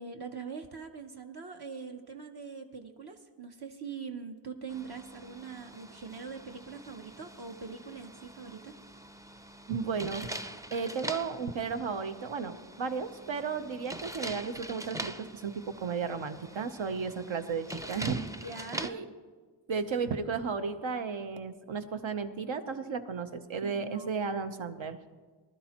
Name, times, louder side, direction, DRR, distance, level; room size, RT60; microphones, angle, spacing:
voice 1, 0.0-8.8 18.4-19.0 23.6-24.1, right 5 dB, 55° right, 4 dB, 0.9 m, -43 dB
sound 1, 4.7-18.9, right 1 dB, 10° right, 0.4 m, -44 dB
voice 2, 9.7-10.3 10.7-18.3 18.8-19.0 19.7-25.0, right 5 dB, 80° right, 9 dB, 0.9 m, -34 dB
19.0 x 12.0 x 2.9 m, 1.4 s
wide cardioid pair, 80°, 46 cm